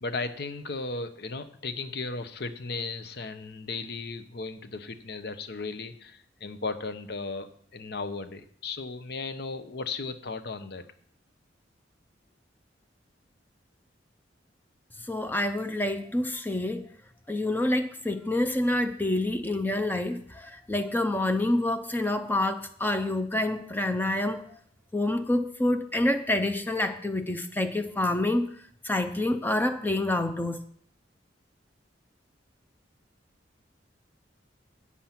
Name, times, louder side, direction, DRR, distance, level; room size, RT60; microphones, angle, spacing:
voice 1, 0.0-10.8, left 3 dB, 60° left, 10 dB, 0.8 m, -36 dB
voice 2, 15.1-16.8 17.3-24.6 24.9-28.5 28.8-30.6, left 1 dB, 10° left, 7 dB, 0.5 m, -27 dB
8.4 x 7.3 x 5.8 m, 0.62 s
head